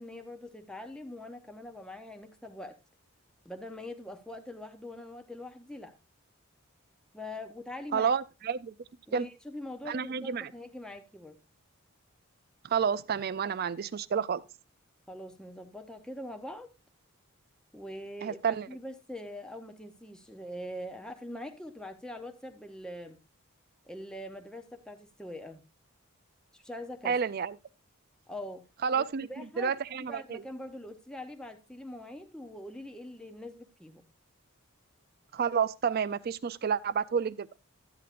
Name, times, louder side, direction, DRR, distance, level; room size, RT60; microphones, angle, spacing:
voice 1, 0.0-2.8 3.4-6.0 7.1-8.1 9.1-11.4 15.1-16.7 17.7-23.2 23.8-25.6 26.5-27.1 28.3-28.6 28.9-29.7 30.0-34.0, left 1 dB, 5° left, 0.6 m, -43 dB
voice 2, 7.9-8.7 9.1-9.3 9.9-10.5 12.6-14.4 18.2-18.7 27.0-27.6 28.8-30.4 35.3-37.5, right 6 dB, 45° right, 0.4 m, -30 dB
12.0 x 8.5 x 2.5 m
head